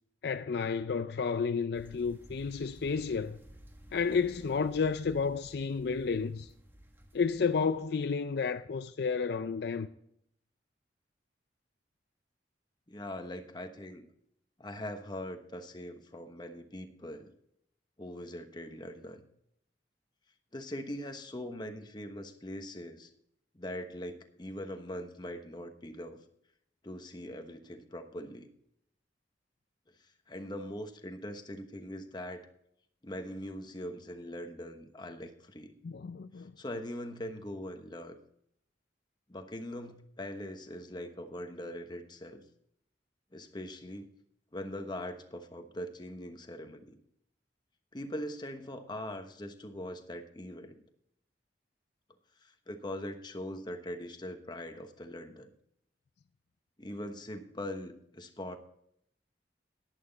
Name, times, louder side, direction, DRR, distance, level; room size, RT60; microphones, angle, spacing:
voice 1, 0.2-3.4 3.9-6.5 7.1-9.9 35.8-36.5, left 5 dB, 65° left, 0.4 m, -31 dB
sound 1, 1.7-7.8, equal, 15° right, 1.5 m, -54 dB
voice 2, 12.9-14.1 14.6-17.3 18.0-19.2 20.5-23.1 23.5-26.2 26.8-28.5 30.0-32.5 33.0-35.7 36.4-38.2 39.3-42.4 43.3-44.1 44.5-47.0 47.9-50.8 52.4-55.5 56.8-58.6, left 1 dB, 25° left, 1.1 m, -42 dB
11.0 x 11.0 x 4.0 m
head